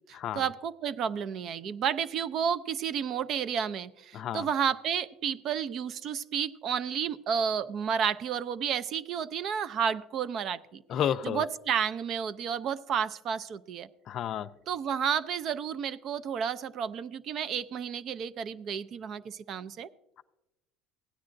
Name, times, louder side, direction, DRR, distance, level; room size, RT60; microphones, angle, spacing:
voice 1, 0.1-10.8 11.2-13.9 14.7-19.9, right 7 dB, 50° right, 14 dB, 0.4 m, -31 dB
voice 2, 4.1-4.5 10.9-11.4 14.1-14.5, left 10 dB, 50° left, 12 dB, 0.4 m, -31 dB
16.0 x 9.5 x 2.5 m, 0.95 s
cardioid pair, 120°, 0 cm